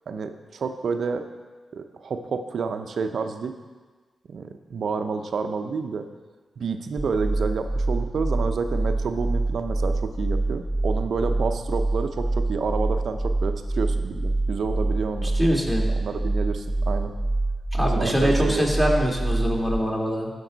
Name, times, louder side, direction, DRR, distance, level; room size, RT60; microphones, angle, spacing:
voice 1, 0.1-1.2 1.7-3.5 4.3-6.1 6.6-15.3 16.0-17.1 18.0-18.7, right 5 dB, 70° right, 7 dB, 0.6 m, -29 dB
sound 1, 7.0-19.8, right 2 dB, 15° right, 1.3 m, -26 dB
voice 2, 15.2-15.8 17.7-20.3, equal, 5° left, -1 dB, 2.3 m, -23 dB
13.0 x 5.3 x 4.0 m, 1.4 s
supercardioid pair, 45°, 0 cm